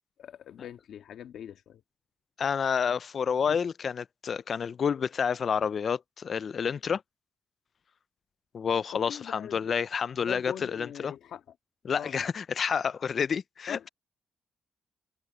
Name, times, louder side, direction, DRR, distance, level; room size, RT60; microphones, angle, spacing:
voice 1, 0.2-1.8 3.5-3.6 8.9-9.8 10.2-11.4 11.9-12.1 13.7-13.9, left 9 dB, 70° left, 1.7 m, -42 dB
voice 2, 2.4-7.0 8.5-11.1 11.8-13.9, left 6 dB, 40° left, 0.3 m, -29 dB
cardioid pair, 155°, 0 cm